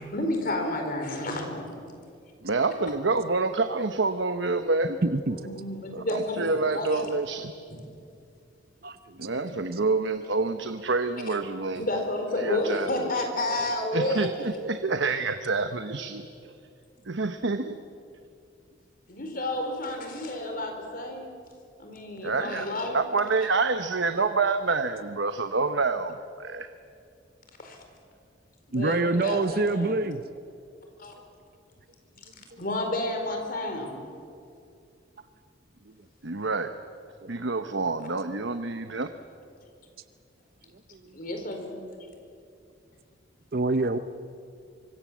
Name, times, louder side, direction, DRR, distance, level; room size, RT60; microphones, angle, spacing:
voice 1, 0.1-1.8 5.3-7.1 11.3-11.4 11.7-14.3 19.1-21.3 21.8-23.1 27.6-27.8 28.7-30.1 31.0-31.2 32.6-34.0 41.1-41.8, left 1 dB, 50° left, 4 dB, 4.3 m, -31 dB
voice 2, 2.4-5.0 5.9-7.5 9.2-11.8 12.4-13.2 13.9-16.3 17.1-17.8 22.2-22.7 22.9-26.7 36.2-36.7 37.3-39.1, right 3 dB, 70° right, 8 dB, 1.0 m, -27 dB
voice 3, 5.0-5.4 8.8-9.3 28.7-30.2 37.2-37.4 40.9-41.1 43.5-44.0, right 2 dB, 50° right, 11 dB, 0.7 m, -26 dB
25.0 x 24.5 x 7.5 m, 2.4 s
head